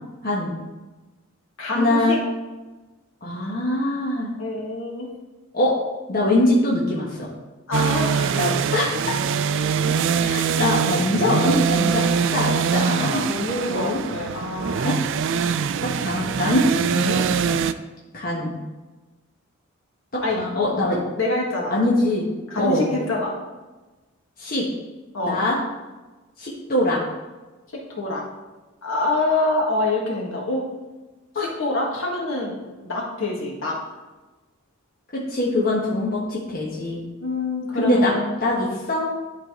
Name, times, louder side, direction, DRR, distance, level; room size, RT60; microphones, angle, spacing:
voice 1, 0.2-0.5 1.7-2.2 3.2-4.3 5.5-5.8 6.1-7.3 8.4-9.1 10.2-13.2 13.6-14.0 14.8-15.0 15.8-16.6 18.1-18.5 20.1-21.0 21.7-22.2 22.6-22.9 24.4-24.7 25.3-25.6 26.4-27.0 31.3-31.5 35.1-37.0 37.8-38.1 38.4-39.1, left 1 dB, 40° left, -5 dB, 1.2 m, -23 dB
voice 2, 1.6-2.2 4.4-5.1 7.7-8.5 9.9-10.0 13.0-15.0 16.9-17.3 20.2-20.4 21.2-21.8 22.5-23.3 25.1-25.4 27.7-28.2 28.8-30.6 31.6-33.8 37.2-38.4, left 2 dB, 65° left, -2 dB, 1.7 m, -26 dB
sound 1, 7.7-17.7, right 6 dB, 60° right, 0.3 m, -23 dB
11.5 x 4.0 x 3.7 m, 1.2 s
head